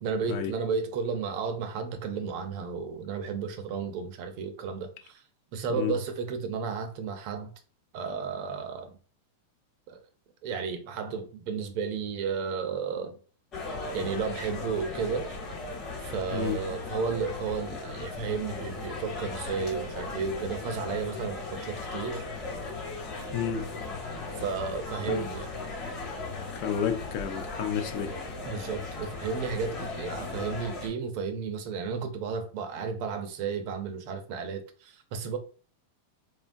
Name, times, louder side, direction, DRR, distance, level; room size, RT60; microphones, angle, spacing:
voice 1, 0.0-5.2 5.5-7.5 7.9-9.0 9.9-10.0 10.4-13.2 13.9-15.3 16.0-22.2 24.4-25.5 28.4-35.4, right 5 dB, 50° right, 0.5 m, -33 dB
voice 2, 5.7-6.0 16.3-16.6 23.3-23.7 25.1-25.2 26.5-28.2, left 7 dB, 50° left, 0.5 m, -31 dB
sound 1, 13.5-30.9, left 3 dB, 30° left, 1.0 m, -37 dB
3.0 x 2.2 x 2.5 m
supercardioid pair, 145°, 0 cm